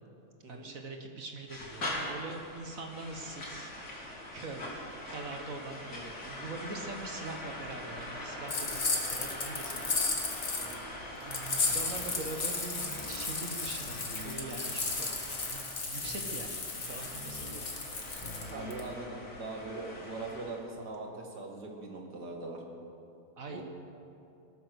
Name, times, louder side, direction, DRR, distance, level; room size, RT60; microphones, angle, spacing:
voice 1, 0.5-3.7 4.3-4.8 5.1-9.9 10.3-10.8 11.2-17.7 23.4-23.6, right 3 dB, 55° right, 3 dB, 1.6 m, -43 dB
sound 1, 1.5-20.6, left 1 dB, 85° left, 3.7 m, -43 dB
sound 2, 8.5-10.7 11.3-18.8, left 3 dB, 45° left, 2.0 m, -34 dB
sound 3, 11.7-12.2 12.8-13.2 13.8-14.4 16.0-16.6 17.1-17.6 18.2-18.7, equal, 35° right, 2.2 m, -47 dB
voice 2, 18.5-22.6 23.5-23.6, right 3 dB, 85° right, 1 dB, 2.6 m, -41 dB
17.0 x 13.0 x 6.3 m, 2.6 s
omnidirectional pair, 1.7 m